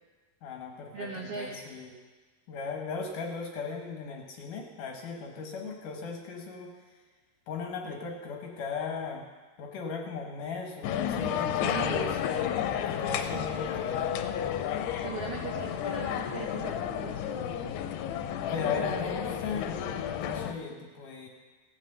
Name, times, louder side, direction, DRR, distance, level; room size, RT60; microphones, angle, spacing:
voice 1, 0.4-1.9 2.5-6.7 7.5-9.2 9.6-12.5 12.9-14.2 18.5-21.3, left 5 dB, 65° left, 1 dB, 2.3 m, -37 dB
voice 2, 0.9-1.5 11.5-12.1 13.3-13.6 15.0-17.7 18.8-19.3, right 5 dB, 70° right, -1 dB, 1.4 m, -39 dB
sound 1, 10.8-20.5, left 9 dB, 85° left, 2.8 m, -32 dB
17.5 x 6.1 x 7.8 m, 1.4 s
omnidirectional pair, 4.7 m